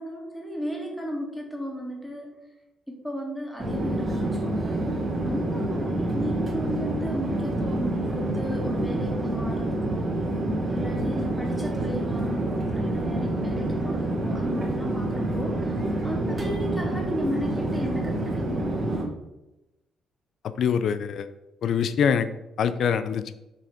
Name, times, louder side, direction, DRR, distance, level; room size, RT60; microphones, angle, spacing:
voice 1, 0.0-2.3 2.9-4.8 5.3-10.1 10.7-15.7 16.0-18.7, equal, ahead, -1 dB, 2.1 m, -35 dB
Chatter / Fixed-wing aircraft airplane, 3.6-19.0, right 1 dB, 35° right, 1.9 m, -27 dB
voice 2, 20.6-21.3 21.6-22.3 22.6-23.2, left 7 dB, 65° left, 12 dB, 0.4 m, -24 dB
6.6 x 3.8 x 4.9 m, 0.95 s
cardioid pair, 90°, 0 cm